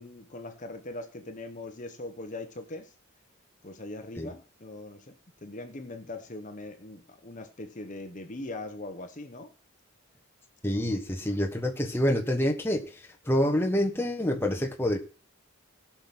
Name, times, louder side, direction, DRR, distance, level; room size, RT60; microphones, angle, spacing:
voice 1, 0.0-2.9 3.6-5.2 5.4-9.5, left 2 dB, 35° left, 1.1 m, -41 dB
voice 2, 10.6-13.0 13.2-15.0, left 1 dB, 10° left, 1.3 m, -27 dB
17.0 x 5.9 x 6.0 m
head